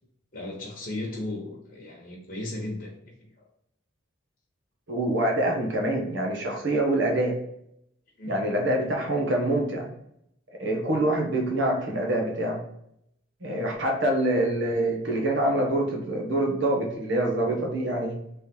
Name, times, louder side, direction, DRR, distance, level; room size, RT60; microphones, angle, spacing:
voice 1, 0.3-2.9 8.2-8.4, left 2 dB, 50° left, -3 dB, 1.0 m, -35 dB
voice 2, 4.9-7.4 8.3-9.9 10.6-12.6 13.4-18.2, right 1 dB, 70° right, 1 dB, 1.2 m, -25 dB
3.4 x 3.3 x 4.4 m, 0.75 s
head